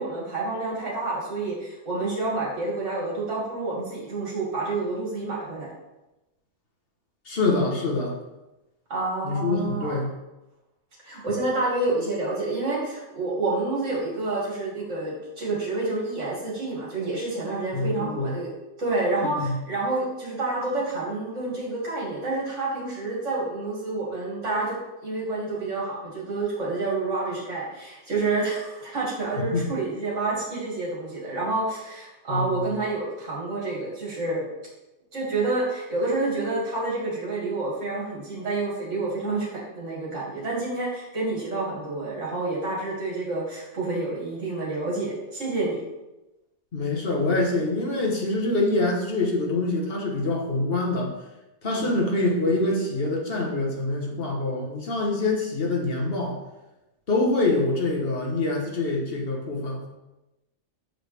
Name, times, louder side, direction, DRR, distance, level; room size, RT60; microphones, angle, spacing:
voice 1, 0.0-5.7 8.9-10.0 11.0-18.5 18.8-34.4 35.1-45.8 51.6-51.9, right 2 dB, 60° right, -5 dB, 2.3 m, -28 dB
voice 2, 7.3-8.2 9.2-10.1 17.7-18.3 19.2-19.6 29.3-29.7 32.3-32.6 46.7-51.1 51.6-56.4 57.1-59.9, left 2 dB, 45° left, -1 dB, 1.2 m, -25 dB
6.6 x 4.9 x 3.3 m, 1.0 s
omnidirectional pair, 1.4 m